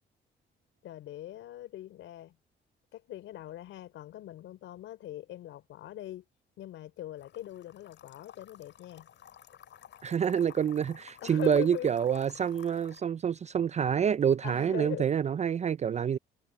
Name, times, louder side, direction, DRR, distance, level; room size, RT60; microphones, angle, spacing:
voice 1, 0.8-2.4 2.9-6.2 6.6-9.1 11.2-11.9 14.4-15.1, left 13 dB, 85° left, 4.7 m, -41 dB
sound 1, 7.2-13.0, left 10 dB, 70° left, 7.9 m, -53 dB
voice 2, 10.0-16.2, right 8 dB, 35° right, 0.4 m, -27 dB
cardioid pair, 90°, 20 cm